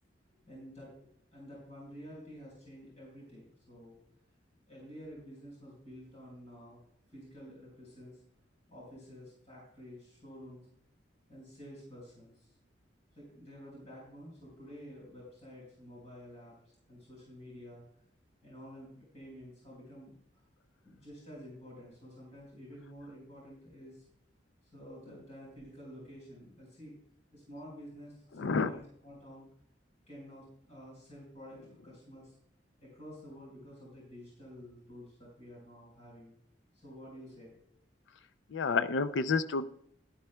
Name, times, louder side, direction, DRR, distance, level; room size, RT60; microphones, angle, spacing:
voice 1, 0.4-4.0 4.7-6.8 7.1-8.2 8.7-10.6 11.3-12.5 13.1-17.8 18.4-20.4 20.8-24.0 24.7-26.9 27.3-29.5 30.1-32.3 32.8-36.3 36.7-37.5, equal, 35° left, -4 dB, 4.5 m, -50 dB
voice 2, 28.4-28.7 38.5-39.6, left 4 dB, 75° left, 12 dB, 0.4 m, -29 dB
12.5 x 11.5 x 2.2 m, 0.74 s
head